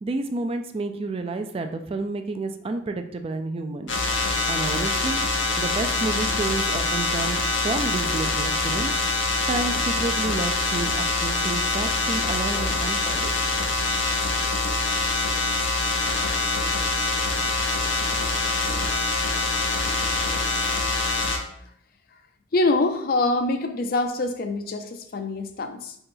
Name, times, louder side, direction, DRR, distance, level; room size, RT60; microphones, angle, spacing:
voice 1, 0.0-3.9 4.5-5.2 5.6-9.0 9.5-13.4, right 3 dB, 30° right, 7 dB, 0.3 m, -30 dB
sound 1, 3.9-21.4, left 3 dB, 85° left, 0.7 m, -25 dB
voice 2, 22.5-25.9, left 2 dB, 55° left, 7 dB, 0.5 m, -24 dB
4.1 x 2.9 x 3.8 m, 0.69 s
head